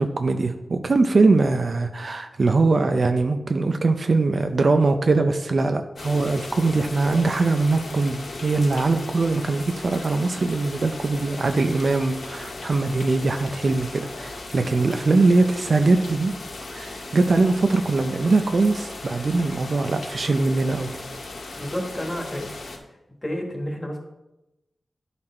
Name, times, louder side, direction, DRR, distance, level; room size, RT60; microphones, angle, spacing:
voice 1, 0.0-16.3 16.7-21.0, right 3 dB, 50° right, 7 dB, 0.5 m, -21 dB
sound 1, 6.0-22.8, left 2 dB, 90° left, 1.7 m, -37 dB
voice 2, 21.6-22.5 23.2-24.0, equal, 20° left, 1 dB, 1.5 m, -30 dB
10.5 x 4.1 x 4.3 m, 0.95 s
wide cardioid pair, 120°, 0 cm